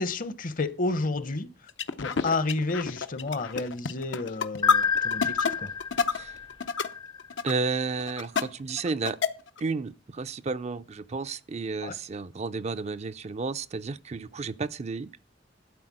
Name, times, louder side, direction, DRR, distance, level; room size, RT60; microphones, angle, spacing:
voice 1, 0.0-1.5 2.0-5.7 11.8-12.0, left 3 dB, 45° left, 0.9 m, -30 dB
sound 1, 1.7-6.9 7.2-7.6 8.0-8.4 8.7-9.6, left 6 dB, 75° left, 0.7 m, -28 dB
sound 2, 4.6-7.6, left 6 dB, 25° left, 0.4 m, -30 dB
voice 2, 7.4-9.2 9.6-15.1, right 4 dB, 35° right, 0.4 m, -32 dB
12.0 x 4.3 x 7.5 m
head